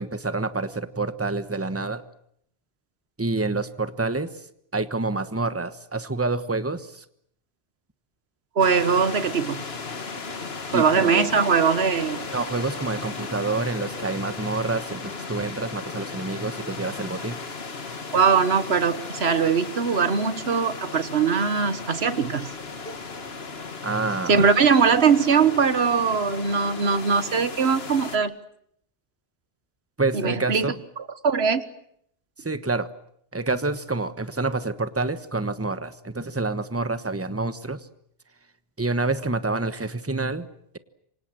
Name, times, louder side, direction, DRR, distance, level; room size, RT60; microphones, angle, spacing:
voice 1, 0.0-2.0 3.2-4.3 4.7-7.0 10.7-11.3 12.3-17.4 23.8-24.4 30.0-30.8 32.4-32.9 33.3-37.8 38.8-40.4, right 3 dB, 15° right, 11 dB, 1.2 m, -27 dB
voice 2, 8.5-9.6 10.7-12.3 18.1-22.5 24.3-28.3 30.1-30.7 31.2-31.7, right 5 dB, 85° right, 13 dB, 1.5 m, -21 dB
sound 1, 8.6-28.2, left 4 dB, 75° left, 2.0 m, -36 dB
28.0 x 25.0 x 7.7 m, 0.70 s
omnidirectional pair, 1.0 m